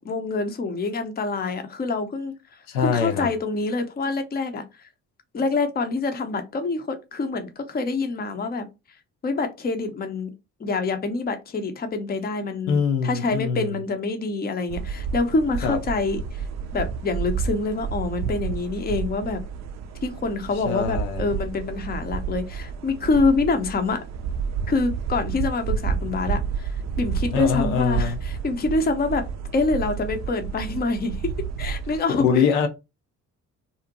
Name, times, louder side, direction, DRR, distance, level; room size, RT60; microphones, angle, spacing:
voice 1, 0.0-2.3 2.8-4.9 5.3-8.7 9.2-10.3 10.6-16.4 16.7-19.4 20.0-24.0 24.7-26.7 27.0-29.2 29.5-31.2 31.6-32.4, left 3 dB, 20° left, 0.6 m, -26 dB
voice 2, 2.7-3.3 12.7-13.7 15.6-15.8 20.6-21.3 27.3-28.2 32.2-32.7, left 6 dB, 70° left, 0.6 m, -23 dB
sound 1, 14.7-32.0, right 6 dB, 40° right, 0.4 m, -30 dB
2.6 x 2.1 x 2.8 m
figure-of-eight pair, 45°, 45 cm